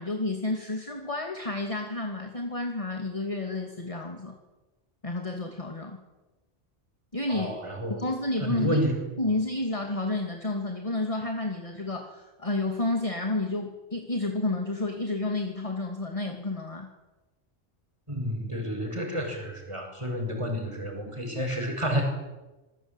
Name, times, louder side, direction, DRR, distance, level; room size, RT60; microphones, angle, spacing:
voice 1, 0.0-4.4 5.0-6.0 7.1-7.6 7.9-8.8 9.2-16.9, left 2 dB, 30° left, 3 dB, 2.7 m, -30 dB
voice 2, 7.3-8.1 8.4-9.0 18.1-22.0, equal, 25° right, 3 dB, 7.2 m, -30 dB
26.5 x 21.5 x 9.1 m, 1.1 s
omnidirectional pair, 1.2 m